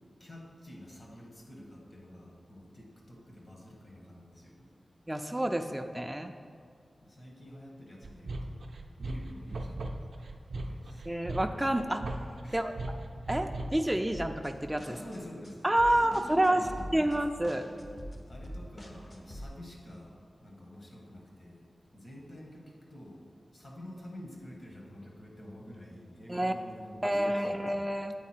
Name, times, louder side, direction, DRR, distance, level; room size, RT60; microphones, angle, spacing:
voice 1, 0.2-4.7 7.0-10.2 10.5-11.1 12.4-12.7 14.8-15.6 15.9-17.1 18.3-23.3 23.5-27.8, left 1 dB, 55° left, -1 dB, 1.4 m, -49 dB
voice 2, 5.1-6.3 11.1-12.2 12.5-12.7 13.3-14.9 15.6-17.7 26.3-26.5 27.0-28.1, right 1 dB, 10° right, 5 dB, 0.3 m, -29 dB
sound 1, 8.0-13.9, right 2 dB, 80° right, 0.4 m, -38 dB
sound 2, 14.1-19.5, equal, 35° left, 0.7 m, -45 dB
8.2 x 4.1 x 4.4 m, 2.1 s
cardioid pair, 60°, 0 cm